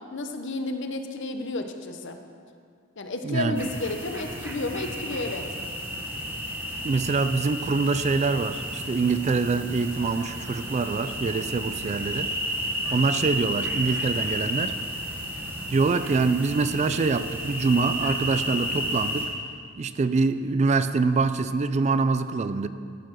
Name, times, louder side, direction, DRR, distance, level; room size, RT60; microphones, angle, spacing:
voice 1, 0.1-2.2 3.0-5.4, left 2 dB, 60° left, 6 dB, 0.9 m, -31 dB
voice 2, 3.2-3.7 6.8-12.3 12.9-14.8 15.7-19.3 19.8-22.7, right 4 dB, 35° right, 12 dB, 0.3 m, -25 dB
sound 1, 3.5-19.3, equal, 10° right, 1.3 m, -32 dB
13.0 x 6.8 x 6.1 m, 2.2 s
head